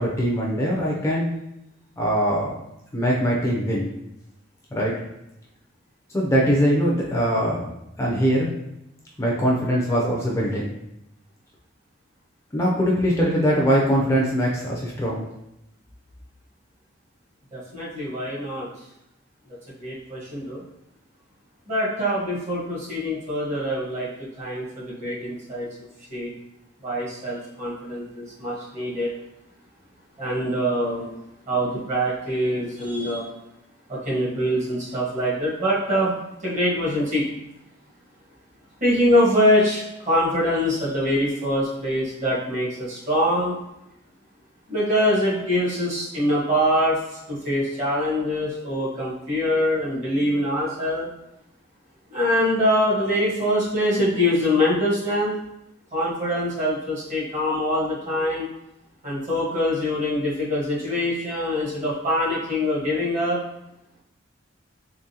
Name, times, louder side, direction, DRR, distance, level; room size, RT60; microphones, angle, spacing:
voice 1, 0.0-1.3 2.0-2.6 2.9-3.9 4.7-4.9 6.1-7.7 8.0-8.5 9.2-10.7 12.5-15.2, equal, 15° left, -3 dB, 0.5 m, -22 dB
voice 2, 17.5-18.7 19.8-20.6 21.7-26.3 26.8-29.1 30.2-31.1 31.5-33.2 33.9-36.1 36.4-37.3 38.8-43.6 44.7-47.0 47.3-51.1 52.1-55.3 55.9-58.5 59.0-63.4, equal, 40° right, -6 dB, 1.4 m, -24 dB
3.7 x 3.2 x 2.8 m, 0.86 s
head